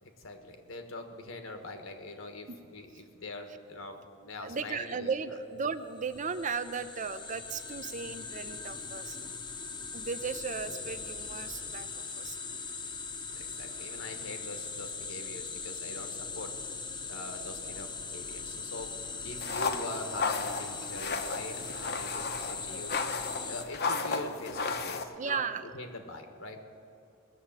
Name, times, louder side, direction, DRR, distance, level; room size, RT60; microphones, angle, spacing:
voice 1, 0.0-5.1 13.3-16.5 17.1-18.9 19.2-23.0 23.4-25.5 25.7-26.6, left 2 dB, 75° left, 6 dB, 1.6 m, -43 dB
voice 2, 4.4-9.2 9.9-11.9 12.1-12.4 25.2-25.6, right 5 dB, 40° right, 11 dB, 0.5 m, -36 dB
sound 1, 5.9-23.6, left 5 dB, 25° left, 0.8 m, -40 dB
sound 2, 19.4-25.0, left 4 dB, 55° left, 0.9 m, -34 dB
19.5 x 7.0 x 8.8 m, 2.6 s
head